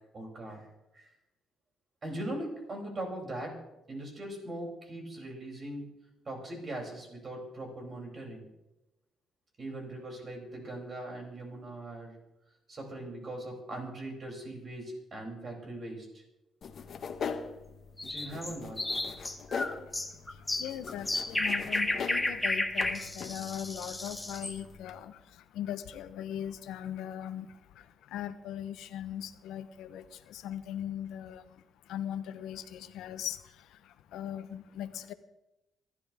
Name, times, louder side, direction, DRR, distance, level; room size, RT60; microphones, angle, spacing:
voice 1, 0.1-0.7 0.9-1.1 2.0-3.5 3.9-5.9 6.3-8.5 9.6-12.2 12.7-16.2 18.1-18.8 23.0-23.1, right 1 dB, 40° right, 0 dB, 7.3 m, -40 dB
sound 1, 16.6-25.0, left 6 dB, 55° left, 1.6 m, -42 dB
sound 2, 18.0-24.6, left 2 dB, 10° left, 1.7 m, -32 dB
voice 2, 20.3-31.4 31.9-35.1, left 10 dB, 85° left, 11 dB, 1.0 m, -40 dB
26.0 x 12.5 x 3.6 m, 0.92 s
cardioid pair, 90°, 0 cm